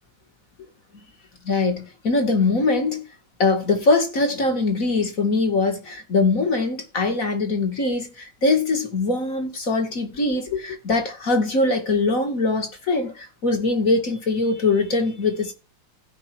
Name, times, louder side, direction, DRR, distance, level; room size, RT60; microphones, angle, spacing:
voice 1, 1.4-3.0 3.4-15.5, left 3 dB, 50° left, 2.7 m, -22 dB
16.0 x 5.6 x 4.6 m
omnidirectional pair, 1.9 m